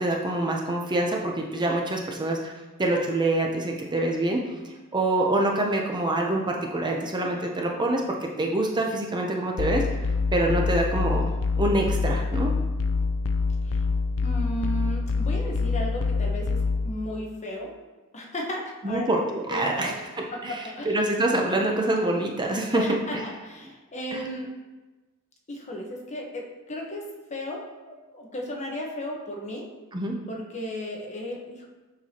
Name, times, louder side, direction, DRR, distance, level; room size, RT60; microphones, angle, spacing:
voice 1, 0.0-2.5 2.8-4.5 4.9-10.0 10.3-11.3 11.6-12.5 18.8-22.8 23.1-23.2 24.1-24.2 29.9-30.2, right 1 dB, 20° right, 0 dB, 0.6 m, -26 dB
sound 1, 9.6-16.9, left 4 dB, 65° left, 0.5 m, -26 dB
voice 2, 14.2-17.7 18.1-19.0 19.5-20.0 20.3-21.0 22.7-24.5 25.5-27.0 27.3-29.7 30.3-31.7, equal, 30° left, -1 dB, 1.1 m, -35 dB
7.1 x 6.0 x 2.9 m, 1.2 s
head